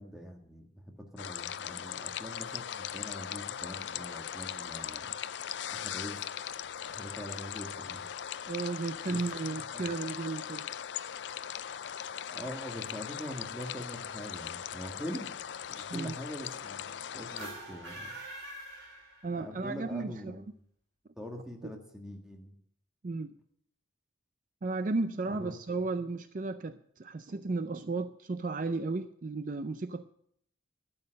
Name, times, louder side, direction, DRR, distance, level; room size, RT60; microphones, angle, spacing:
voice 1, 0.0-5.1 5.7-6.2 6.9-8.1 9.0-9.2 9.7-9.9 12.3-15.4 15.7-18.1 19.4-20.4 21.2-22.5 25.3-25.5, equal, 5° right, 1 dB, 1.7 m, -43 dB
sound 1, 1.2-17.5, left 9 dB, 65° left, 0.4 m, -39 dB
voice 2, 8.5-10.7 15.9-16.1 19.2-20.4 23.0-23.3 24.6-30.0, right 3 dB, 40° right, 11 dB, 0.4 m, -34 dB
sound 2, 17.3-19.6, right 1 dB, 90° right, 4.1 m, -44 dB
12.5 x 8.8 x 6.5 m, 0.66 s
head